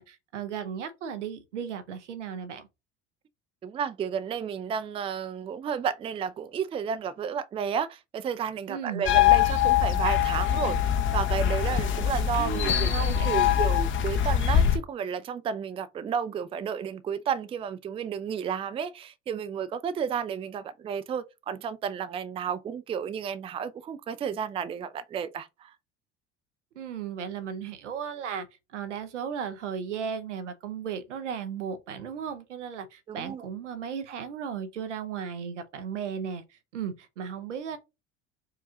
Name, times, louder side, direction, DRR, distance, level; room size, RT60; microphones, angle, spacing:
voice 1, 0.0-2.7 8.7-9.0 12.4-13.6 26.8-28.5 28.7-37.8, right 7 dB, 80° right, 0.7 m, -35 dB
voice 2, 3.6-25.7 33.1-33.5, right 7 dB, 15° right, 0.3 m, -32 dB
sound 1, 9.1-14.8, left 10 dB, 35° left, 0.7 m, -23 dB
4.7 x 2.3 x 2.8 m
hypercardioid pair, 65°, 35 cm